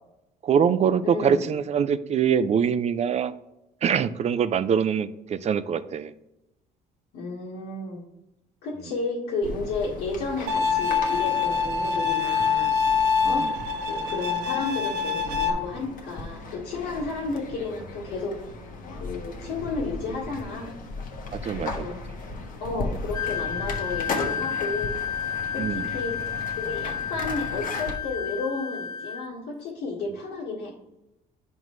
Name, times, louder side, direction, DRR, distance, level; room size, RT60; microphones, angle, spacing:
voice 1, 0.4-3.3 3.8-6.1 13.2-13.5 21.3-21.9 25.6-25.9, right 7 dB, 40° right, 13 dB, 0.5 m, -24 dB
voice 2, 1.0-1.5 7.1-8.0 8.6-12.7 13.2-13.5 13.8-18.4 18.9-20.7 21.5-22.0 22.6-24.9 25.5-26.2 26.5-30.7, left 3 dB, 85° left, -6 dB, 1.8 m, -32 dB
sound 1, 9.4-28.0, left 3 dB, 55° left, 1.2 m, -37 dB
Bowed string instrument, 10.5-15.5, left 6 dB, 85° right, 0.7 m, -25 dB
Wind instrument woodwind instrument, 23.1-29.3, left 7 dB, 25° left, 0.3 m, -31 dB
9.3 x 5.3 x 3.1 m, 0.91 s
cardioid pair, 110°, 17 cm